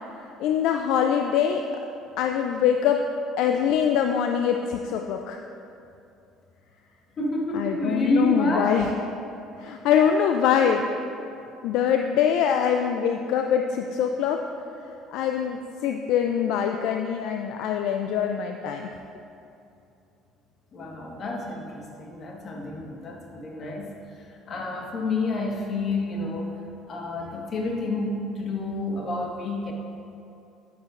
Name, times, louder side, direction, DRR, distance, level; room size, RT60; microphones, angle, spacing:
voice 1, 0.4-1.7 2.2-3.0 3.4-5.4 7.5-8.9 9.6-10.9 11.6-14.4 15.1-18.9, left 8 dB, 70° left, 4 dB, 0.4 m, -23 dB
voice 2, 7.2-8.9 20.7-26.6 26.9-29.7, left 2 dB, 45° left, 0 dB, 1.5 m, -29 dB
10.5 x 9.6 x 2.5 m, 2.7 s
hypercardioid pair, 65°, 0 cm